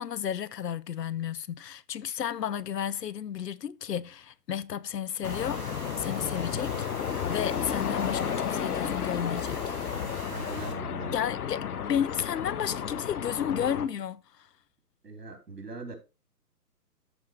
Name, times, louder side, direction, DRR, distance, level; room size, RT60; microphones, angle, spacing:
voice 1, 0.0-5.6 6.0-6.9 7.3-9.7 11.1-14.5, left 9 dB, 85° left, 0.7 m, -32 dB
sound 1, 5.2-13.9, left 8 dB, 65° left, 1.1 m, -32 dB
sound 2, 5.2-10.7, right 5 dB, 25° right, 1.6 m, -44 dB
voice 2, 10.3-11.2 15.0-16.0, right 3 dB, 75° right, 3.6 m, -40 dB
13.5 x 4.9 x 3.1 m
figure-of-eight pair, 135°, 48 cm